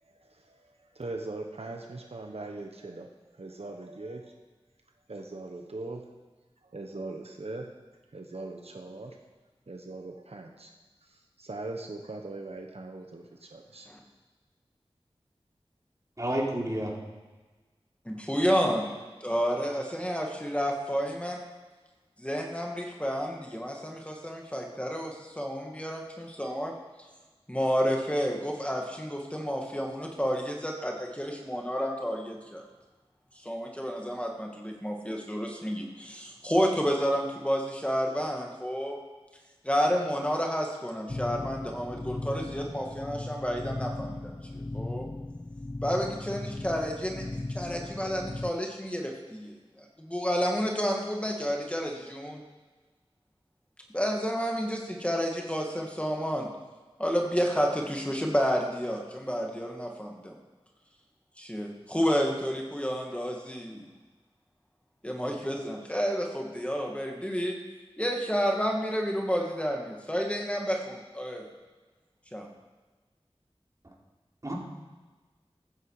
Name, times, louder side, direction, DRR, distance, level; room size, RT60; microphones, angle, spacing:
voice 1, 0.0-4.4 5.1-6.1 6.6-7.7 8.1-9.2 9.7-10.7 11.0-13.9, right 2 dB, 75° right, 3 dB, 1.3 m, -41 dB
voice 2, 16.2-16.9 74.4-74.5, right 1 dB, 30° right, -3 dB, 4.0 m, -29 dB
voice 3, 18.1-18.9 19.2-21.4 22.2-26.7 27.5-32.6 33.4-39.0 39.6-45.1 45.8-52.4 53.9-56.5 57.0-60.3 61.4-63.8 65.0-67.5 68.0-71.5 72.3-72.5, equal, 10° left, 0 dB, 2.3 m, -30 dB
sound 1, 41.1-48.5, left 2 dB, 25° left, 0.5 m, -37 dB
15.5 x 13.0 x 5.0 m, 1.3 s
wide cardioid pair, 55°, 10 cm